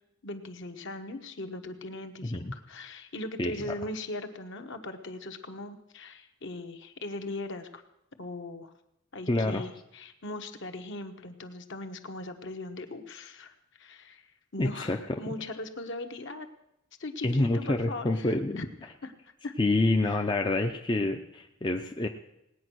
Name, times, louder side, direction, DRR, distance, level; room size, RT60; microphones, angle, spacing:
voice 1, 0.2-7.8 8.2-8.7 9.1-14.3 14.5-16.5 17.0-19.1 19.4-19.5 20.0-20.2, left 2 dB, 55° left, 6 dB, 1.2 m, -39 dB
voice 2, 2.2-2.6 3.4-3.6 9.3-9.6 14.6-15.3 17.2-18.7 19.6-22.1, left 2 dB, 20° left, 3 dB, 0.6 m, -27 dB
18.5 x 9.1 x 6.3 m, 0.83 s
head